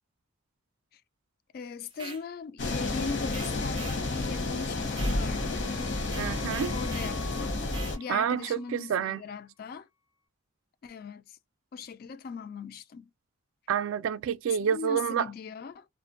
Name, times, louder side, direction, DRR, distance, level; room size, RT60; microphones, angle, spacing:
voice 1, 1.5-5.7 6.7-7.6 8.0-9.9 10.8-11.4 11.7-13.1 14.6-15.9, left 5 dB, 45° left, 0.3 m, -39 dB
sound 1, 1.9-2.2 3.3-4.0 4.9-5.2 6.0-7.2 7.7-8.0, right 5 dB, 25° right, 0.5 m, -44 dB
sound 2, 2.6-8.0, left 2 dB, 65° left, 0.9 m, -31 dB
sound 3, 4.5-8.9, left 6 dB, 85° left, 1.3 m, -50 dB
voice 2, 6.2-6.8 8.1-9.2 13.7-15.3, right 8 dB, 85° right, 0.3 m, -28 dB
2.5 x 2.1 x 2.4 m
head